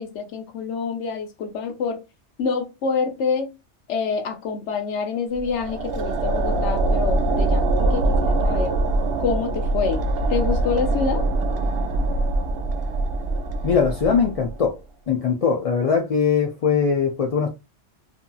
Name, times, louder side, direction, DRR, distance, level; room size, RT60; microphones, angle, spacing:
voice 1, 0.0-2.0 2.4-3.5 3.9-8.7 9.2-10.0 10.3-11.3, left 5 dB, 80° left, 1.0 m, -26 dB
sound 1, 5.3-14.7, right 2 dB, 65° right, 0.7 m, -23 dB
voice 2, 13.6-14.8 15.1-17.5, left 6 dB, 65° left, 0.3 m, -21 dB
2.7 x 2.6 x 2.3 m
omnidirectional pair, 1.2 m